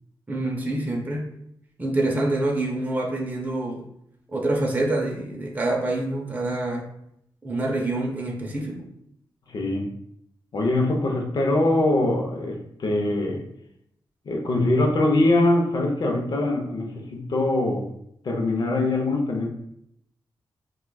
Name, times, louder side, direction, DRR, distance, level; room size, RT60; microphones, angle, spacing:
voice 1, 0.3-1.3 1.8-3.8 4.3-6.9 7.4-8.9, right 2 dB, 20° right, -1 dB, 0.6 m, -26 dB
voice 2, 9.5-9.9 10.5-13.4 14.3-17.9 18.2-19.5, left 2 dB, 55° left, 1 dB, 0.7 m, -23 dB
4.5 x 2.3 x 2.2 m, 0.74 s
wide cardioid pair, 110°, 8 cm